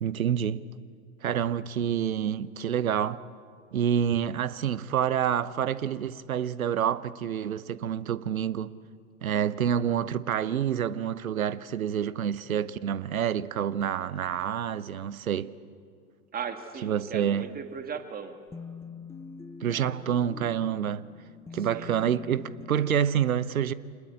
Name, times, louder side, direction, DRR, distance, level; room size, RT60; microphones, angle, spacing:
voice 1, 0.0-0.6 1.2-3.2 3.7-8.7 9.2-15.5 16.8-17.5 19.6-21.0 21.5-23.7, right 9 dB, 75° right, 0.9 m, -28 dB
voice 2, 16.3-18.4 19.7-20.0 21.5-21.9, right 6 dB, 20° right, 2.0 m, -38 dB
sound 1, 18.5-22.8, left 5 dB, 5° left, 0.6 m, -44 dB
26.0 x 20.5 x 8.7 m
figure-of-eight pair, 90°, 43 cm